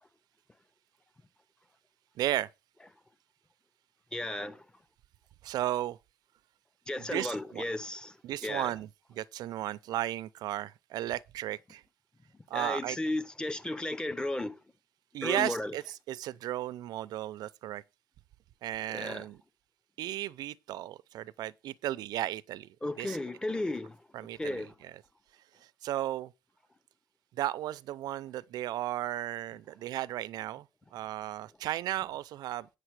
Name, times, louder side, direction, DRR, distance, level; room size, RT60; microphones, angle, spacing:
voice 1, 2.2-2.5 5.4-6.0 7.0-7.7 8.2-11.8 12.5-13.0 15.1-17.8 18.6-19.4 20.0-22.7 23.0-23.2 24.1-25.0 25.8-26.3 27.3-30.7 30.9-32.7, right 14 dB, 85° right, 0.5 m, -35 dB
voice 2, 4.1-4.6 6.9-8.1 8.4-8.7 12.5-14.5 15.2-15.7 18.9-19.2 22.8-24.0 24.4-24.7, left 2 dB, 10° left, 0.8 m, -34 dB
9.0 x 6.5 x 4.7 m
cardioid pair, 125°, 7 cm